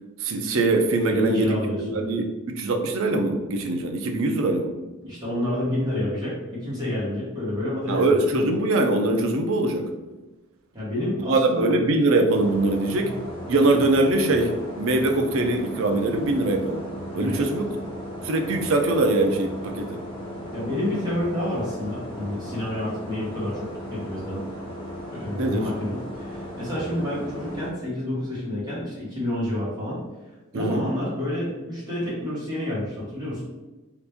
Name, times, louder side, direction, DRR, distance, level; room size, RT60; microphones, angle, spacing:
voice 1, 0.2-4.7 7.9-9.9 11.2-13.1 13.5-16.8 17.1-17.7 18.2-20.0 25.4-25.7 30.5-30.8, right 2 dB, 70° right, 4 dB, 0.4 m, -22 dB
voice 2, 1.1-2.0 5.0-8.2 10.7-11.7 12.9-13.1 17.1-17.4 20.5-24.5 25.1-30.0 30.5-33.4, left 1 dB, 20° right, -10 dB, 1.3 m, -29 dB
sound 1, 12.3-27.7, equal, 25° left, 0.7 m, -36 dB
2.9 x 2.5 x 3.4 m, 1.1 s
head